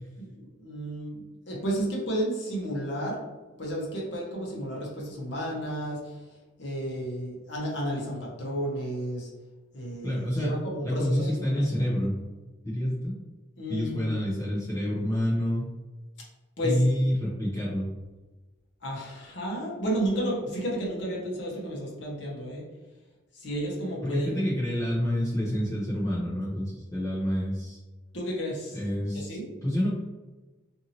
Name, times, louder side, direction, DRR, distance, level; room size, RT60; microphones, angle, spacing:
voice 1, 0.2-3.2 3.6-9.3 9.7-11.4 11.8-11.9 13.6-14.2 16.6-16.8 18.8-22.6 23.3-24.4 28.1-28.8 29.1-29.5, equal, 55° left, -3 dB, 0.9 m, -32 dB
voice 2, 10.0-10.5 10.8-12.1 12.6-13.2 13.7-15.7 16.6-17.9 24.0-27.8 28.7-29.9, equal, 15° left, -9 dB, 0.6 m, -28 dB
2.7 x 2.7 x 2.8 m, 1.2 s
head